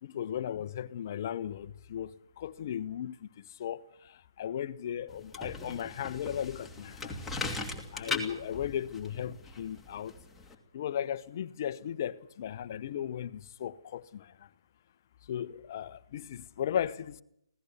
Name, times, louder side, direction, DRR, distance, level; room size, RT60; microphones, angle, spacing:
voice 1, 0.0-7.2 7.9-10.1 10.7-14.5 15.3-17.2, left 9 dB, 45° left, 1.0 m, -36 dB
sound 1, 5.1-10.5, left 3 dB, 5° left, 2.8 m, -39 dB
25.5 x 17.5 x 6.8 m
figure-of-eight pair, 145°, 3 cm